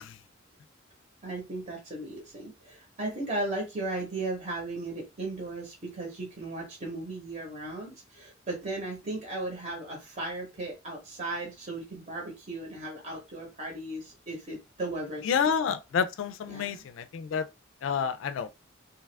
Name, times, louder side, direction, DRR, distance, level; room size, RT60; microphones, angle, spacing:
voice 1, 1.2-15.5 16.5-16.8, right 2 dB, 40° right, 0.9 m, -36 dB
voice 2, 15.3-16.8 17.1-17.4 17.8-18.5, left 6 dB, 75° left, 0.3 m, -28 dB
2.8 x 2.3 x 3.3 m
head